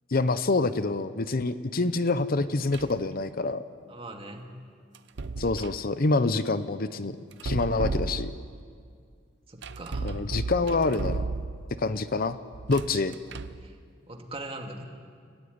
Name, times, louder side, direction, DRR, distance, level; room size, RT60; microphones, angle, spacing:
voice 1, 0.1-3.6 5.4-7.2 7.4-8.3 10.0-11.3 11.8-12.4 12.7-13.2, left 3 dB, 50° left, 12 dB, 0.8 m, -26 dB
sound 1, 2.7-3.1 5.0-5.8 7.3-8.6 9.6-11.8 12.5-13.7, right 3 dB, 65° right, 0.8 m, -34 dB
voice 2, 3.9-4.5 9.5-10.2 12.9-13.0 13.6-13.7 14.1-14.9, right 2 dB, 30° right, 3 dB, 2.4 m, -40 dB
30.0 x 15.0 x 9.6 m, 2.2 s
head